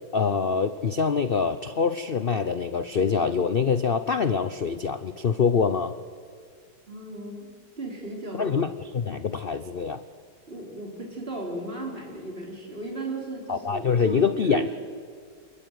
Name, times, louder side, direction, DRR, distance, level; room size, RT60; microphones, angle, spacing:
voice 1, 0.1-5.9 8.3-10.0 13.5-14.7, left 5 dB, 85° left, 11 dB, 0.5 m, -25 dB
voice 2, 6.9-8.5 10.5-14.7, right 2 dB, 30° right, -1 dB, 5.2 m, -35 dB
27.5 x 21.0 x 9.4 m, 2.2 s
omnidirectional pair, 2.1 m